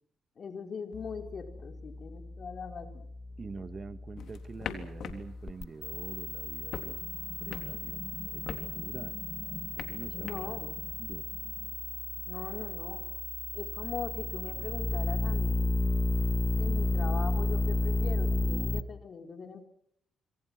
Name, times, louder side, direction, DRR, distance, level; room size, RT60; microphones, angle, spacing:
voice 1, 0.4-3.1 10.1-10.7 12.3-13.1 13.5-15.7 16.6-19.7, left 5 dB, 50° left, 5 dB, 4.8 m, -41 dB
sound 1, 0.9-18.8, left 2 dB, 25° left, 2.1 m, -33 dB
voice 2, 3.4-7.0 7.4-8.0 8.3-9.2 9.8-10.5 11.0-11.2, right 4 dB, 35° right, 11 dB, 1.7 m, -45 dB
sound 2, 4.2-13.2, left 8 dB, 70° left, 3.6 m, -47 dB
26.5 x 26.0 x 6.2 m, 0.69 s
cardioid pair, 90°, 0 cm